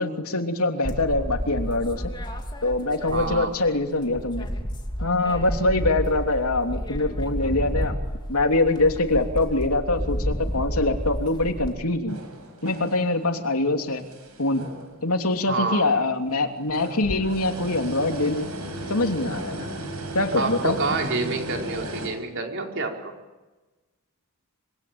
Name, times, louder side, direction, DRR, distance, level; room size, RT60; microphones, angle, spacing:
voice 1, 0.0-2.1 2.6-4.5 5.0-7.9 8.3-12.2 12.6-14.0 14.4-14.6 15.0-18.5 18.9-19.7 20.1-20.8, left 2 dB, 80° left, 5 dB, 3.1 m, -24 dB
sound 1, 0.8-3.7 4.0-11.7, equal, 20° left, 3.0 m, -31 dB
voice 2, 3.1-3.5 15.5-16.0 20.3-23.1, right 3 dB, 55° right, 2 dB, 4.8 m, -28 dB
sound 2, 12.1-13.3 13.7-15.3 15.7-15.8 16.6-22.1, right 1 dB, 90° right, 7.7 m, -35 dB
26.0 x 25.5 x 9.0 m, 1.2 s
head